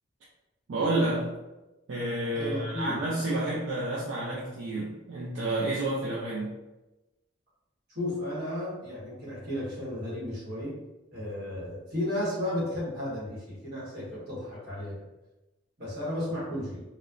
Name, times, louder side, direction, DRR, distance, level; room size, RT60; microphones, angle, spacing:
voice 1, 0.7-1.3 1.9-6.5, right 1 dB, 75° right, -6 dB, 0.5 m, -30 dB
voice 2, 2.3-3.1 7.9-10.7 11.1-15.0 15.8-16.8, left 1 dB, 55° right, -7 dB, 1.3 m, -33 dB
3.0 x 2.0 x 2.4 m, 1.0 s
head